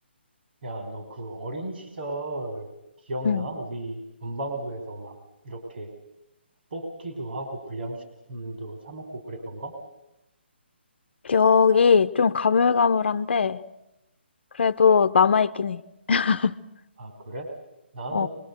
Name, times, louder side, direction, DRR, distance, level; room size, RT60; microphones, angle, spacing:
voice 1, 0.6-2.7 3.0-5.2 5.4-5.9 6.7-8.0 8.3-9.7 17.0-17.5 17.9-18.3, right 1 dB, 65° right, 4 dB, 4.3 m, -34 dB
voice 2, 11.2-13.6 14.6-15.8 16.1-16.6 18.1-18.3, left 6 dB, 65° left, 12 dB, 0.9 m, -20 dB
24.5 x 23.5 x 8.1 m, 0.91 s
hypercardioid pair, 150°, 6 cm